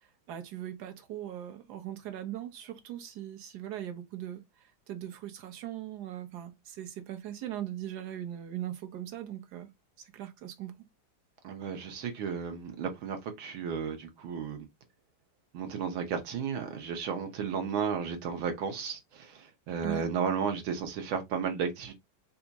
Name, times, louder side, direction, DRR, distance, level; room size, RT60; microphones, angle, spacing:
voice 1, 0.3-9.7 10.0-10.7 19.8-20.0, right 12 dB, 60° right, 1.3 m, -40 dB
voice 2, 11.4-14.7 15.5-21.9, right 6 dB, 75° right, 1.7 m, -33 dB
4.8 x 2.4 x 4.0 m
omnidirectional pair, 2.3 m